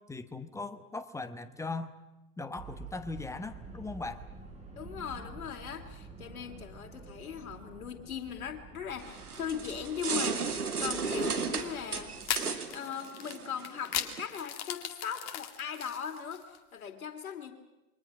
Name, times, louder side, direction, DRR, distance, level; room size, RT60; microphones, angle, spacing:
voice 1, 0.1-1.9 2.4-4.2, left 3 dB, 5° left, 11 dB, 1.0 m, -39 dB
sound 1, 2.5-12.4, right 3 dB, 15° right, 5.0 m, -49 dB
voice 2, 4.7-12.2 12.7-17.5, left 8 dB, 65° left, 4 dB, 3.1 m, -39 dB
sound 2, 9.0-14.3, right 5 dB, 80° right, 2.3 m, -35 dB
sound 3, 11.1-11.3 12.2-16.6, left 11 dB, 35° left, 2.1 m, -37 dB
28.0 x 23.0 x 6.2 m, 1.0 s
figure-of-eight pair, 100°, 44 cm